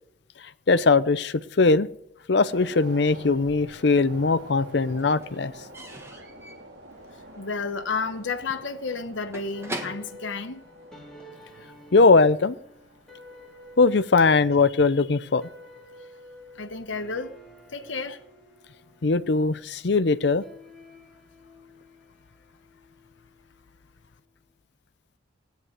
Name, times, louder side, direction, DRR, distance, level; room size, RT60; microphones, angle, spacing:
voice 1, 0.7-1.9 2.3-5.5 11.9-12.5 13.8-15.5 19.0-20.4, left 3 dB, 65° left, 0.6 m, -20 dB
sound 1, 2.4-17.0 17.3-17.5, right 1 dB, 75° right, 4.1 m, -48 dB
Slam / Squeak / Wood, 3.5-4.3 4.6-11.4, right 1 dB, 15° right, 1.6 m, -42 dB
voice 2, 7.1-10.6 16.0-16.1 16.5-17.4 17.7-18.2, left 4 dB, 85° left, 1.1 m, -32 dB
sound 2, 9.5-24.0, left 1 dB, 5° left, 3.1 m, -50 dB
16.5 x 9.4 x 8.0 m
head